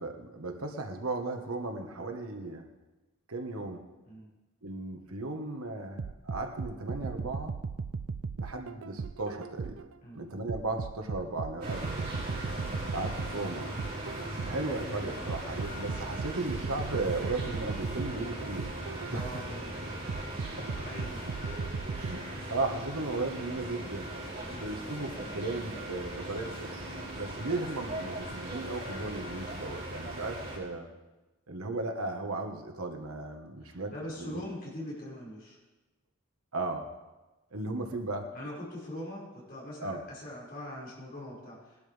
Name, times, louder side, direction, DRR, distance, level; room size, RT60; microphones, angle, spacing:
voice 1, 0.0-2.7 3.3-3.8 4.6-7.5 8.4-9.7 10.1-12.0 12.9-13.7 14.4-18.7 19.1-19.4 20.2-20.3 20.6-20.7 21.9-24.1 24.6-26.7 27.2-30.9 31.5-34.5 36.5-36.9 37.5-38.3 39.8-40.0, right 2 dB, 90° right, 4 dB, 1.5 m, -36 dB
sound 1, 6.0-9.9 10.5-14.7 15.3-19.5 20.1-22.1, right 5 dB, 70° right, 0.4 m, -37 dB
sound 2, 11.6-30.6, right 1 dB, 45° right, 5.3 m, -39 dB
voice 2, 19.1-20.2 20.7-21.2 24.4-24.8 33.6-35.6 38.3-41.9, left 1 dB, 45° left, -5 dB, 5.7 m, -42 dB
20.0 x 12.0 x 3.5 m, 1.1 s
head